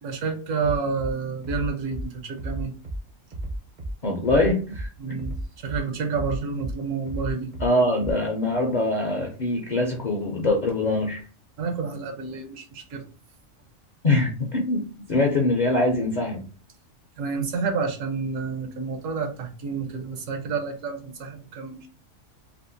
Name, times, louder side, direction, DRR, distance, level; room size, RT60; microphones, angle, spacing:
voice 1, 0.0-2.7 5.0-7.5 11.6-13.0 17.2-21.9, right 5 dB, 80° right, 4 dB, 1.2 m, -29 dB
Bass drum, 0.6-1.1 1.4-2.0 2.4-3.0 3.3-3.9 4.2-4.9 5.2-5.8 6.1-6.7 7.1-7.7 8.0-8.1, right 1 dB, 50° right, 0.6 m, -32 dB
voice 2, 4.0-4.9 7.6-11.2 14.0-16.5, left 2 dB, 50° left, 1 dB, 0.5 m, -23 dB
3.5 x 2.4 x 2.6 m, 0.35 s
omnidirectional pair, 1.3 m